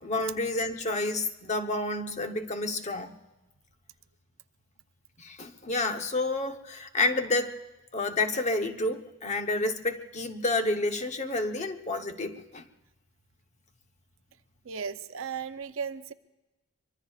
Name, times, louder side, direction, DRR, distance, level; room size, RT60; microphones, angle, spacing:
voice 1, 0.0-3.1 5.2-7.6 7.9-12.6, left 2 dB, 30° left, 6 dB, 0.9 m, -29 dB
voice 2, 14.6-16.1, right 6 dB, 65° right, 10 dB, 0.6 m, -35 dB
24.5 x 23.5 x 2.4 m, 1.0 s
head